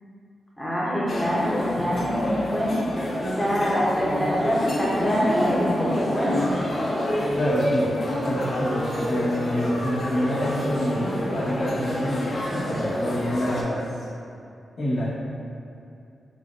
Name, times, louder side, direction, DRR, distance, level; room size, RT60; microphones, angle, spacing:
voice 1, 0.6-2.8 3.4-6.4, equal, 5° left, -6 dB, 0.6 m, -24 dB
sound 1, 1.1-13.6, left 1 dB, 50° left, 0.4 m, -28 dB
voice 2, 7.3-7.9 8.2-13.8 14.8-15.1, equal, 85° left, -9 dB, 0.8 m, -27 dB
4.0 x 2.1 x 2.3 m, 2.6 s
cardioid pair, 75°, 0 cm